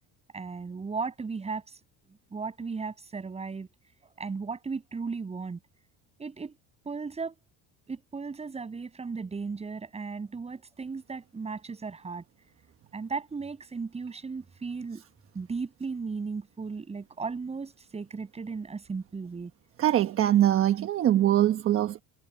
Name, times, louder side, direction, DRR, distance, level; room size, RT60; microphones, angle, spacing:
voice 1, 0.3-1.8 2.3-3.7 4.0-5.6 6.2-6.5 6.8-7.3 7.9-12.2 12.9-15.0 15.3-19.5, right 4 dB, 15° right, 6.5 m, -36 dB
voice 2, 19.8-22.0, right 12 dB, 40° right, 1.2 m, -23 dB
cardioid pair, 150°, 35 cm